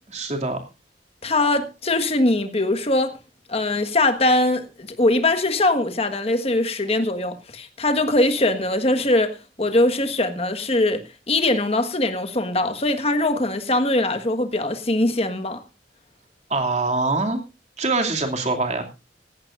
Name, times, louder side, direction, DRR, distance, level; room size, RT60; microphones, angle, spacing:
voice 1, 0.1-0.6 16.5-17.4 17.8-18.8, right 3 dB, 40° right, 2.6 m, -23 dB
voice 2, 1.2-3.2 3.5-15.6, left 2 dB, 35° left, 1.5 m, -21 dB
17.0 x 15.0 x 2.5 m
head